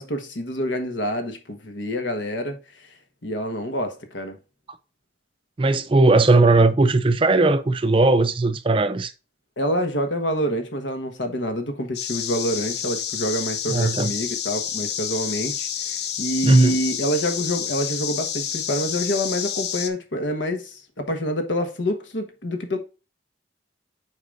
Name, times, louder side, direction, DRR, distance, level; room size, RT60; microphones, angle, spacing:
voice 1, 0.0-2.6 3.2-4.4 9.6-22.8, equal, 80° left, 1.3 m, -27 dB
voice 2, 5.6-9.1 13.7-14.1 16.4-16.8, right 2 dB, 30° right, 0.4 m, -18 dB
sound 1, 11.9-19.9, left 9 dB, 60° left, 0.7 m, -29 dB
8.0 x 4.9 x 2.5 m
head